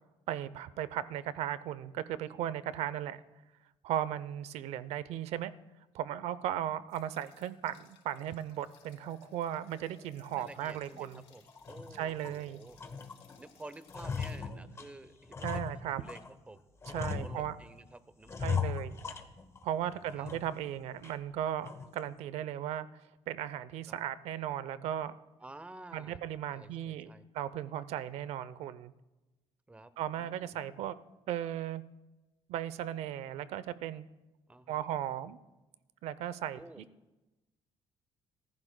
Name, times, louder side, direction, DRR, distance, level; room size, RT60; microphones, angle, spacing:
voice 1, 0.3-3.2 3.8-5.5 5.9-11.2 11.9-12.6 15.4-16.0 16.9-17.6 18.4-19.0 19.6-22.9 23.3-25.1 25.9-28.9 30.0-31.0 31.3-31.8 32.5-34.1 34.7-35.4 36.0-36.8, right 11 dB, 80° right, 16 dB, 0.6 m, -36 dB
sound 1, 6.9-14.4, left 7 dB, 70° left, 3.7 m, -62 dB
sound 2, 10.3-10.5 10.9-11.1 11.5-12.4 12.8-13.4 13.7-16.3 16.8-17.8 18.3-19.7 20.1-20.7 21.0-21.1 21.6-22.0, left 6 dB, 25° left, 1.0 m, -38 dB
voice 2, 10.4-12.8 13.4-15.6 15.9-16.2 16.5-18.8 19.8-20.3 25.4-26.2 26.5-27.3 29.7-29.9 30.2-30.6 34.5-34.8 36.5-36.8, right 2 dB, 10° right, 14 dB, 0.6 m, -51 dB
26.0 x 14.5 x 2.2 m, 1.1 s
cardioid pair, 140°, 11 cm